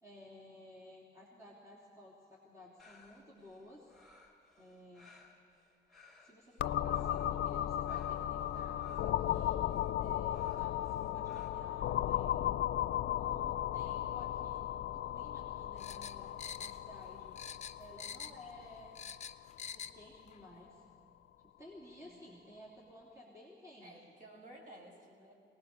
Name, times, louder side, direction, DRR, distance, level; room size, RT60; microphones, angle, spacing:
voice 1, 0.0-3.9 4.6-5.1 6.2-9.6 10.0-12.3 13.1-17.4 17.8-19.0 19.7-20.8 21.6-23.9, left 1 dB, 15° right, -5 dB, 3.2 m, -55 dB
sound 1, 2.8-11.5, left 3 dB, ahead, 4.0 m, -63 dB
sound 2, 6.6-20.2, left 12 dB, 85° left, 0.5 m, -36 dB
sound 3, 15.8-17.1 17.4-18.5 18.8-20.0 20.3-20.4, left 7 dB, 35° left, 0.6 m, -45 dB
voice 2, 21.9-22.5 23.8-25.3, right 1 dB, 45° right, -1 dB, 5.7 m, -56 dB
23.0 x 19.0 x 6.8 m, 2.4 s
wide cardioid pair, 150°, 19 cm